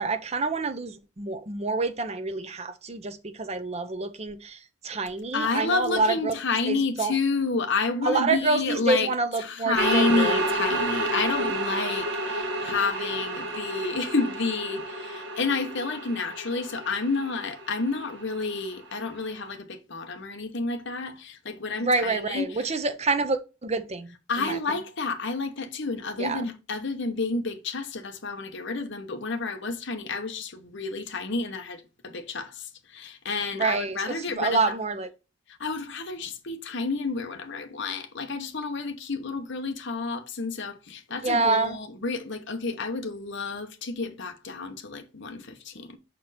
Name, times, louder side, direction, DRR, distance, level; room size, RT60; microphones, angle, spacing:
voice 1, 0.0-6.3 6.7-7.2 8.0-10.4 21.8-24.6 26.2-26.5 33.5-35.1 41.2-41.8, right 3 dB, 30° right, 0.7 m, -27 dB
voice 2, 5.3-9.1 9.4-22.5 24.3-34.6 35.6-46.0, left 4 dB, 55° left, 1.0 m, -30 dB
sound 1, 9.8-19.2, right 1 dB, 55° right, 1.3 m, -30 dB
6.2 x 4.4 x 4.1 m
head